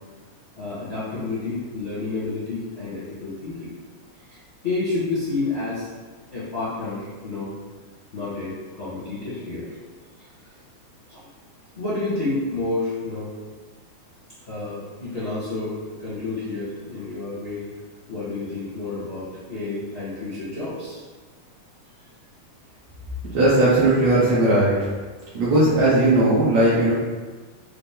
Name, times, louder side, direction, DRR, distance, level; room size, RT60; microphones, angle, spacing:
voice 1, 0.6-3.7 4.3-4.4 4.6-5.9 6.3-7.5 8.1-9.7 11.1-11.2 11.7-13.3 14.4-17.6 18.1-21.0, left 3 dB, 45° left, -13 dB, 0.8 m, -29 dB
voice 2, 23.3-24.9 25.3-26.9, right 1 dB, 70° right, -8 dB, 1.8 m, -18 dB
5.8 x 2.1 x 3.5 m, 1.4 s
omnidirectional pair, 3.3 m